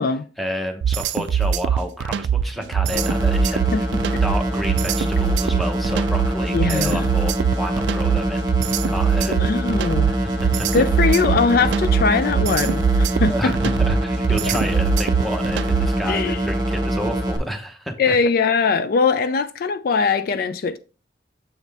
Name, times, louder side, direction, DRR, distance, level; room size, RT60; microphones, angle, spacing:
voice 1, 0.4-3.9 4.2-8.5 8.9-9.5 10.1-10.7 13.3-18.2, equal, ahead, 0.9 m, -30 dB
sound 1, 0.8-16.1, right 7 dB, 90° right, 0.3 m, -22 dB
sound 2, 2.9-17.4, right 1 dB, 25° right, 1.2 m, -24 dB
voice 2, 3.7-4.2 6.5-7.1 9.3-10.1 10.7-13.7 16.1-16.5 18.0-20.8, left 4 dB, 55° left, 0.4 m, -21 dB
7.1 x 4.1 x 3.4 m
head